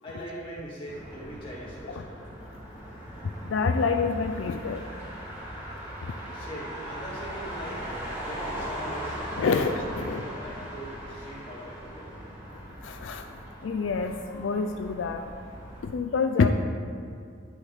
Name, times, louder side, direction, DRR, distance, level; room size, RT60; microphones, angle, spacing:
voice 1, 0.0-2.1 6.3-7.9 8.3-9.6 10.0-12.2, equal, 25° left, -8 dB, 2.3 m, -41 dB
Motor vehicle (road), 0.9-15.8, equal, 15° right, 2.2 m, -39 dB
voice 2, 3.4-4.8 9.4-10.2 12.8-13.3 13.6-15.2 15.8-16.5, left 5 dB, 80° left, 6 dB, 0.4 m, -27 dB
10.5 x 5.2 x 4.0 m, 2.2 s
head